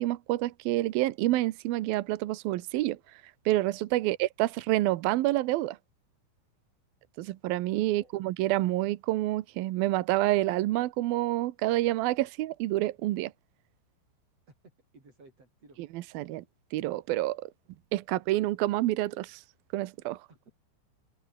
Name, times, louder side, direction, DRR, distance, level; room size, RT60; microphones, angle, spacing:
voice 1, 0.0-5.8 7.2-13.3 15.9-16.4 16.7-17.5 17.9-19.4 19.7-20.3, right 16 dB, 80° right, 2.1 m, -28 dB
voice 2, 7.9-8.3 14.5-15.8 20.3-20.4, right 3 dB, 30° right, 8.4 m, -57 dB
open air
omnidirectional pair, 5.5 m